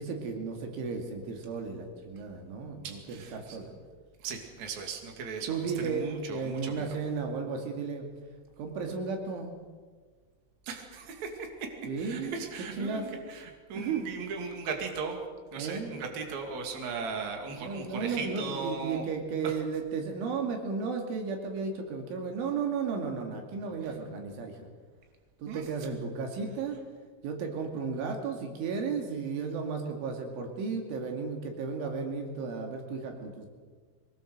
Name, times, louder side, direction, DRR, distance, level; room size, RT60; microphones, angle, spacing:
voice 1, 0.0-3.7 5.5-8.1 8.6-9.5 11.9-12.4 12.8-13.0 13.8-14.1 15.6-16.0 17.5-24.7 25.4-26.8 27.2-33.5, right 5 dB, 90° right, 3 dB, 4.9 m, -34 dB
voice 2, 2.8-3.6 4.2-6.9 10.6-11.7 12.0-15.2 15.5-19.1 19.4-19.6 25.5-25.6, right 4 dB, 45° right, 2 dB, 3.4 m, -38 dB
23.0 x 20.5 x 6.7 m, 1.5 s
omnidirectional pair, 5.4 m